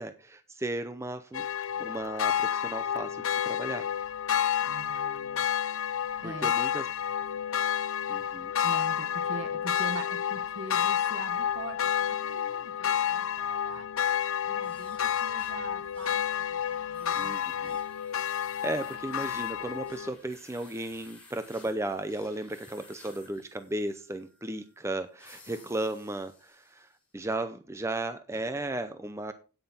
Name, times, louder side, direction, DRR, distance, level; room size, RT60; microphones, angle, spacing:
voice 1, 0.0-1.5 1.8-3.9 6.2-6.9 8.1-8.5 17.2-17.8 18.3-29.3, right 1 dB, 10° right, 10 dB, 0.5 m, -35 dB
sound 1, 1.3-20.1, left 9 dB, 65° left, 0.5 m, -30 dB
voice 2, 4.6-5.5 6.2-6.5 8.6-11.8 12.2-13.9 14.5-16.2 16.5-17.8 25.6-25.7, right 2 dB, 55° right, 9 dB, 1.5 m, -43 dB
sound 2, 14.6-27.0, left 3 dB, 5° left, 3.9 m, -56 dB
9.4 x 9.0 x 4.3 m, 0.35 s
head